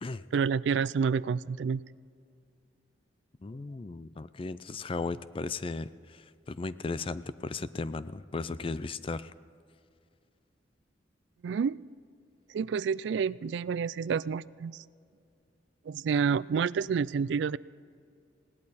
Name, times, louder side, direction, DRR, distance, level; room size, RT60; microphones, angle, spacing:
voice 1, 0.3-1.8 11.4-11.8 12.5-14.8 15.9-17.6, right 6 dB, 65° right, 19 dB, 0.3 m, -29 dB
voice 2, 3.4-9.3, left 3 dB, 30° left, 15 dB, 0.4 m, -36 dB
20.5 x 17.5 x 4.1 m, 2.4 s
head